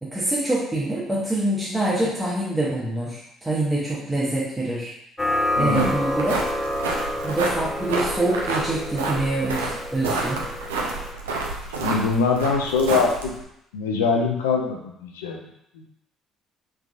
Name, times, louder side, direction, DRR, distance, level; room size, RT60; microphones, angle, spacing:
voice 1, 0.0-4.9 5.6-6.4 7.2-10.4, right 1 dB, 10° right, -6 dB, 0.9 m, -25 dB
sound 1, 5.2-11.1, left 1 dB, 10° left, 0.5 m, -29 dB
voice 2, 5.5-6.0 11.8-13.3 13.7-15.4 15.8-15.9, left 4 dB, 75° left, 1 dB, 0.5 m, -23 dB
sound 2, 5.5-13.4, right 3 dB, 75° right, 0.4 m, -29 dB
3.6 x 3.4 x 2.4 m, 0.77 s
figure-of-eight pair, 50°, 0 cm